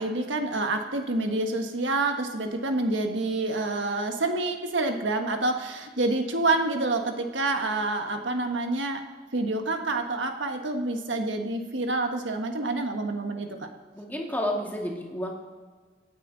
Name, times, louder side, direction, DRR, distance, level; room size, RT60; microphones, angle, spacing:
voice 1, 0.0-9.0 9.3-13.7, right 2 dB, 75° right, 4 dB, 1.5 m, -28 dB
voice 2, 13.9-15.3, left 1 dB, 10° left, -1 dB, 2.2 m, -30 dB
26.5 x 9.3 x 4.1 m, 1.5 s
head